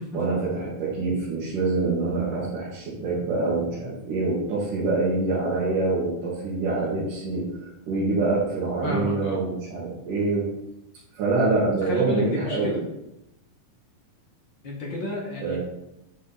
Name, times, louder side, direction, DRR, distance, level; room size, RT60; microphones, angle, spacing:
voice 1, 0.1-10.5 11.2-12.8 15.4-15.6, right 3 dB, 70° right, -9 dB, 3.7 m, -25 dB
voice 2, 8.8-9.4 11.8-12.8 14.6-15.6, left 1 dB, 40° left, -2 dB, 1.9 m, -31 dB
9.6 x 5.2 x 4.1 m, 0.88 s
omnidirectional pair, 3.8 m